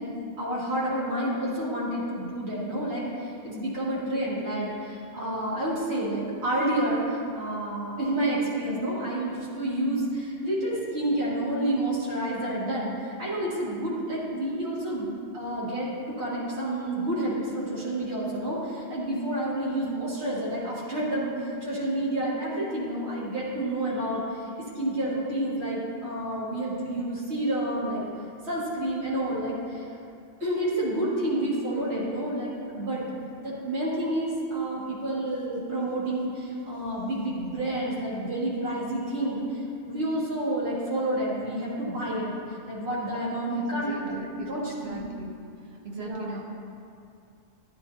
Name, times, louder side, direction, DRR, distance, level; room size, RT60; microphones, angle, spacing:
voice 1, 0.0-15.1 15.3-24.5 24.7-28.0 28.4-29.8 30.4-33.0 33.4-45.0 46.0-46.3, right 1 dB, 90° right, -8 dB, 2.5 m, -29 dB
voice 2, 43.4-45.3 45.7-46.4, right 1 dB, 70° right, -1 dB, 1.4 m, -39 dB
12.5 x 10.5 x 2.8 m, 2.5 s
omnidirectional pair, 1.1 m